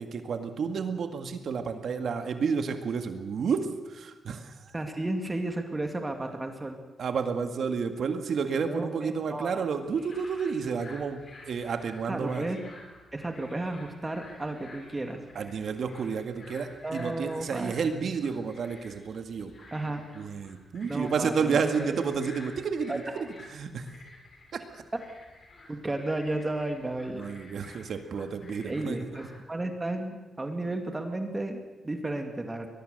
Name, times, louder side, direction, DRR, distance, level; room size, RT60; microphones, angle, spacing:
voice 1, 0.0-4.5 7.0-12.5 15.4-19.5 20.1-23.9 24.5-24.6 27.1-29.1, right 5 dB, 65° right, 7 dB, 1.9 m, -31 dB
voice 2, 4.7-6.8 8.7-9.7 12.1-12.6 13.1-15.2 16.8-17.7 19.7-20.0 20.8-21.9 22.9-23.2 25.7-27.2 28.6-32.7, right 2 dB, 20° right, 5 dB, 2.2 m, -33 dB
sound 1, 9.8-29.4, left 2 dB, 45° left, 7.0 m, -51 dB
22.0 x 20.0 x 6.7 m, 1.1 s
cardioid pair, 105°, 0 cm